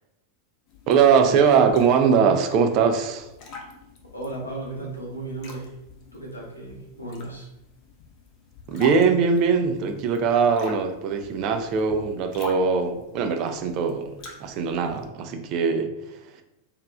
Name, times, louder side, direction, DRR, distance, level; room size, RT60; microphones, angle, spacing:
sound 1, 0.7-15.1, left 3 dB, 40° left, 0.5 m, -45 dB
voice 1, 0.9-3.3 8.7-14.1 14.4-15.9, right 6 dB, 40° right, 5 dB, 0.3 m, -21 dB
voice 2, 4.1-5.7 6.1-7.5, right 2 dB, 85° left, -4 dB, 0.8 m, -35 dB
2.9 x 2.3 x 2.2 m, 0.87 s
figure-of-eight pair, 90°, 0 cm